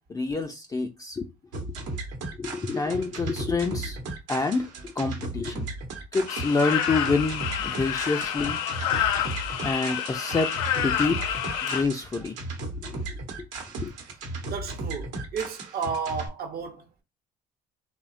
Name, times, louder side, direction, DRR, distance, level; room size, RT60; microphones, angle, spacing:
voice 1, 0.1-1.3 1.6-1.7 2.4-4.0 4.3-5.7 6.1-8.6 9.6-10.5 10.8-11.3 11.6-12.4 12.7-13.5 13.8-13.9, left 3 dB, 20° left, 0.4 m, -28 dB
sound 1, 1.5-16.3, right 2 dB, 80° right, 0.9 m, -36 dB
sound 2, 6.3-11.8, left 9 dB, 90° left, 0.4 m, -28 dB
voice 2, 14.5-17.0, right 6 dB, 55° right, 0.7 m, -33 dB
2.7 x 2.1 x 2.5 m
supercardioid pair, 70°, 19 cm